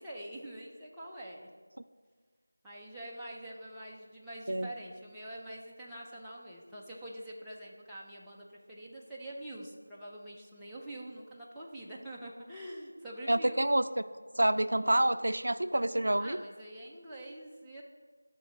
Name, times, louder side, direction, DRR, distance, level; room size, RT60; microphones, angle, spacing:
voice 1, 0.0-1.5 2.6-13.6 16.2-17.8, right 1 dB, ahead, -11 dB, 0.4 m, -45 dB
voice 2, 13.3-13.9 14.4-16.4, right 1 dB, 70° right, 12 dB, 0.3 m, -27 dB
10.5 x 3.8 x 5.0 m, 1.5 s
figure-of-eight pair, 175°, 0 cm